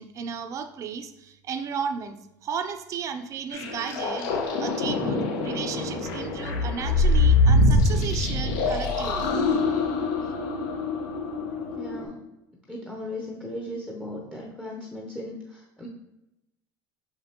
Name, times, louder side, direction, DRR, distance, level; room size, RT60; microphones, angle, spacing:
voice 1, 0.0-2.2 2.4-9.3, right 6 dB, 35° right, 8 dB, 0.5 m, -34 dB
sound 1, 3.5-12.0, left 2 dB, 85° left, 1.2 m, -24 dB
voice 2, 11.7-12.2 12.7-15.9, left 1 dB, 5° left, -1 dB, 0.7 m, -37 dB
6.3 x 5.1 x 2.9 m, 0.92 s
cardioid pair, 150°, 10 cm